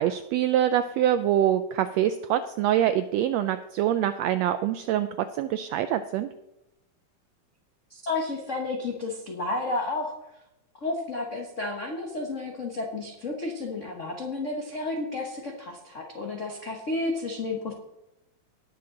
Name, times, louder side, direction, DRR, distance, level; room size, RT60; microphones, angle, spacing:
voice 1, 0.0-6.3, right 11 dB, 80° right, 10 dB, 1.5 m, -25 dB
voice 2, 7.9-10.1 10.8-17.7, left 2 dB, 70° left, 1 dB, 0.7 m, -31 dB
19.0 x 6.7 x 3.8 m, 0.93 s
omnidirectional pair, 3.4 m